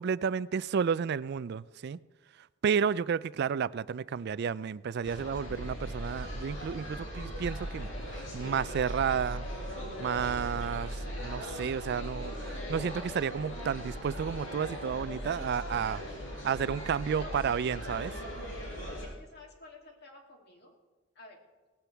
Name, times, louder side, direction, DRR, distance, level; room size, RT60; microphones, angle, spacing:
voice 1, 0.0-2.0 2.6-9.4 10.0-16.0 16.4-18.1, right 7 dB, 55° right, 0.4 m, -31 dB
sound 1, 5.0-19.1, equal, 75° left, 5.0 m, -39 dB
voice 2, 19.0-20.8 21.1-21.4, left 3 dB, 55° left, 2.8 m, -51 dB
18.0 x 16.0 x 3.4 m
head